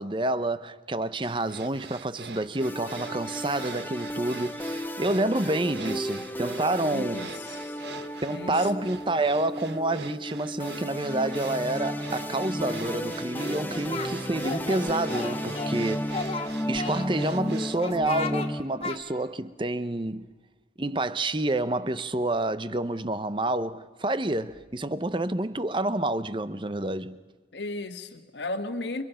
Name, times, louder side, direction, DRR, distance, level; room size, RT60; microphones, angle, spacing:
voice 1, 0.0-7.3 8.2-16.1 16.7-20.3 20.8-27.2, right 2 dB, 25° right, 0.8 m, -28 dB
sound 1, 1.2-17.8, right 4 dB, 75° right, 1.3 m, -44 dB
sound 2, 2.6-18.6, equal, 10° left, 0.8 m, -34 dB
voice 2, 6.9-7.9 8.3-8.7 27.5-29.0, left 2 dB, 80° left, 1.6 m, -35 dB
Singing, 13.4-14.1 14.4-15.8 16.1-17.4 17.8-18.5 18.8-19.0, left 3 dB, 30° left, 1.5 m, -34 dB
30.0 x 26.0 x 5.7 m
head